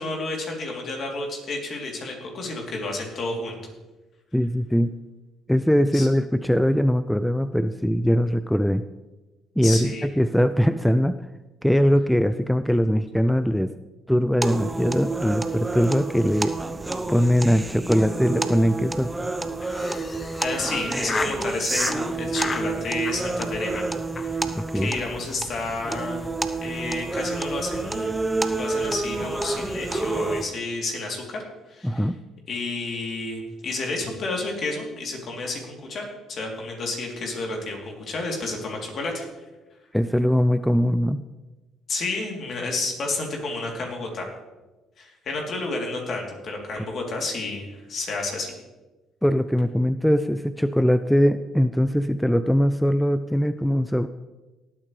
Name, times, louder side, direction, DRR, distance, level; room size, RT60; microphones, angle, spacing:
voice 1, 0.0-3.6 5.9-6.1 9.6-10.1 20.4-23.8 24.1-24.4 24.7-26.3 26.6-28.2 28.5-31.4 31.7-32.0 32.5-39.3 41.9-44.3 45.0-48.5, left 2 dB, 55° left, 0 dB, 3.2 m, -31 dB
voice 2, 4.3-4.9 5.5-8.8 9.6-11.2 11.6-13.7 14.1-16.5 17.1-19.1 24.6-24.9 31.8-32.2 39.9-41.2 49.2-54.1, equal, ahead, 12 dB, 0.5 m, -21 dB
sound 1, 14.4-30.4, right 3 dB, 15° right, 0.9 m, -29 dB
Laughter, 19.6-21.4 21.7-22.0 22.3-22.7 23.0-23.4 23.7-23.9 24.2-24.3 24.5-24.6 24.9-25.0 25.3-25.6, left 4 dB, 35° left, 1.2 m, -33 dB
18.5 x 8.9 x 3.3 m, 1.1 s
hypercardioid pair, 60°, 0 cm